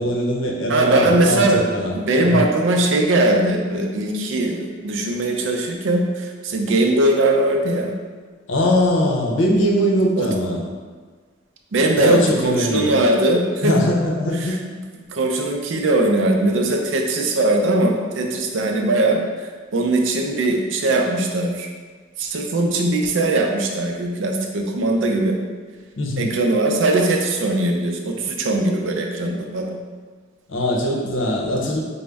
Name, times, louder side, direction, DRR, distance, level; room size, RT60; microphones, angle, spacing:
voice 1, 0.0-1.9 2.2-2.5 8.5-10.6 11.9-13.0 13.6-14.6 26.0-26.3 30.5-31.8, equal, 70° left, 0 dB, 0.7 m, -21 dB
voice 2, 0.7-1.6 1.9-7.9 10.2-10.3 11.7-13.8 14.4-14.6 15.1-21.7 22.2-25.4 26.2-29.7, right 2 dB, 70° right, 2 dB, 0.5 m, -20 dB
5.0 x 2.1 x 3.4 m, 1.5 s
head